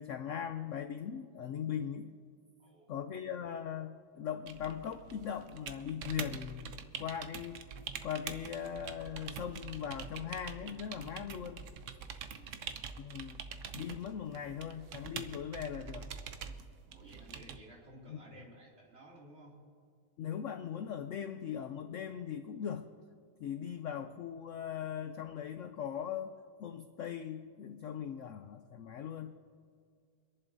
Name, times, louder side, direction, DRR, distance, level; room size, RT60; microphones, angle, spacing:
voice 1, 0.0-2.1 2.9-7.6 8.0-11.6 13.0-13.4 13.7-16.1 18.1-18.2 20.2-22.9 23.4-26.3 26.6-29.3, left 8 dB, 85° left, 8 dB, 0.6 m, -40 dB
voice 2, 2.6-2.9 12.1-12.6 16.9-19.5, right 1 dB, 35° right, -5 dB, 2.9 m, -55 dB
sound 1, 4.5-17.6, right 7 dB, 60° right, 0.8 m, -45 dB
27.0 x 11.0 x 2.7 m, 2.2 s
omnidirectional pair, 1.9 m